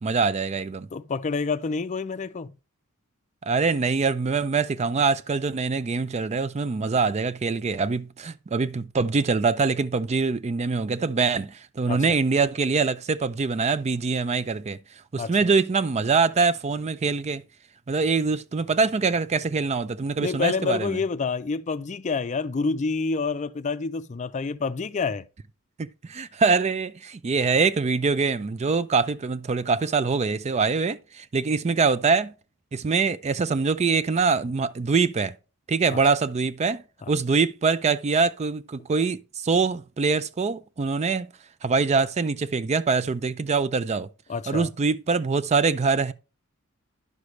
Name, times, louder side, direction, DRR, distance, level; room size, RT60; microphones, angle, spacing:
voice 1, 0.0-0.9 3.4-14.8 15.1-17.4 17.9-21.0 25.8-32.3 32.7-35.3 35.7-41.3 41.6-44.1 44.5-46.1, right 4 dB, 30° right, 0.4 m, -24 dB
voice 2, 0.9-2.5 11.9-12.2 15.2-15.3 20.2-25.2 35.9-36.0 37.0-37.1 44.3-44.7, left 4 dB, 35° left, 0.4 m, -28 dB
10.5 x 6.5 x 3.2 m
head